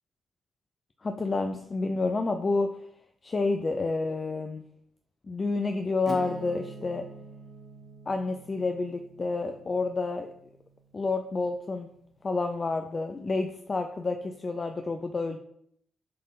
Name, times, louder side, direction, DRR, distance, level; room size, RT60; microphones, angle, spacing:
voice 1, 1.0-2.8 3.2-4.6 5.3-7.0 8.1-10.3 10.9-11.9 12.2-15.4, left 3 dB, 40° left, 6 dB, 0.6 m, -29 dB
Acoustic guitar / Strum, 6.1-11.6, right 4 dB, 50° right, 0.9 m, -46 dB
7.6 x 3.7 x 4.0 m, 0.69 s
supercardioid pair, 50°, 0 cm